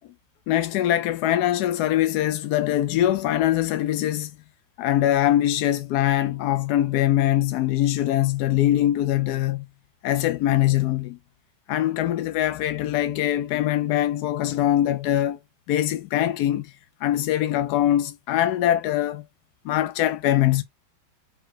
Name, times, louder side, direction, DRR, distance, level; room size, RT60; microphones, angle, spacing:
voice 1, 0.5-4.3 4.8-9.7 10.0-11.2 11.7-15.4 15.7-16.7 17.0-19.2 19.6-20.6, left 13 dB, 90° left, 0.8 m, -22 dB
3.5 x 3.1 x 4.7 m
omnidirectional pair, 2.3 m